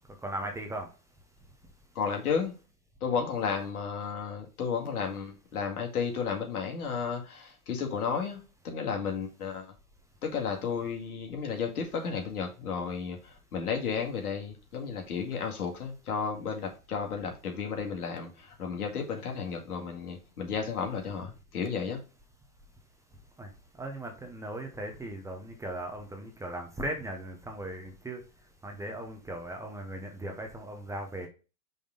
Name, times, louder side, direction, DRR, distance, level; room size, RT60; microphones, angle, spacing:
voice 1, 0.2-0.9 23.4-23.5 23.8-28.2 28.6-31.3, right 1 dB, 5° right, 3 dB, 0.8 m, -38 dB
voice 2, 1.9-2.5 3.0-9.7 10.2-22.0, left 6 dB, 75° left, 2 dB, 2.1 m, -33 dB
5.4 x 3.7 x 5.2 m, 0.32 s
hypercardioid pair, 125°, 45 cm